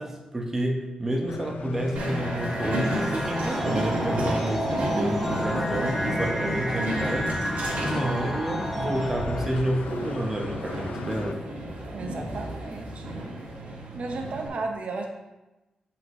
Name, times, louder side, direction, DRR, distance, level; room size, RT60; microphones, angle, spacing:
voice 1, 0.0-7.4 7.8-11.4, right 1 dB, 20° right, 0 dB, 1.0 m, -29 dB
sound 1, 1.3-11.3, left 4 dB, 85° left, 0.4 m, -40 dB
sound 2, 2.0-9.6, equal, 5° left, 0.7 m, -32 dB
Train, 2.0-14.5, equal, 80° right, 2.1 m, -32 dB
voice 2, 11.9-13.4 13.9-15.1, right 3 dB, 60° right, 3 dB, 0.7 m, -34 dB
7.6 x 5.6 x 3.1 m, 1.0 s
wide cardioid pair, 140°, 2 cm